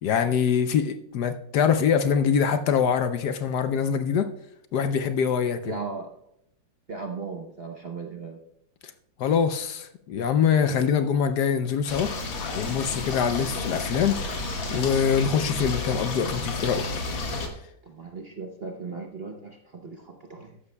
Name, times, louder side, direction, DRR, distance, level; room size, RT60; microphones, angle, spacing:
voice 1, 0.0-4.3 4.7-5.7 9.2-12.1 12.5-14.4 14.7-16.9, left 7 dB, 70° left, 1.1 m, -24 dB
voice 2, 5.6-6.1 6.9-8.4 17.9-20.5, right 4 dB, 45° right, 0.8 m, -37 dB
sound 1, 11.9-17.5, left 3 dB, 85° left, 2.4 m, -31 dB
14.0 x 11.0 x 2.2 m
omnidirectional pair, 2.0 m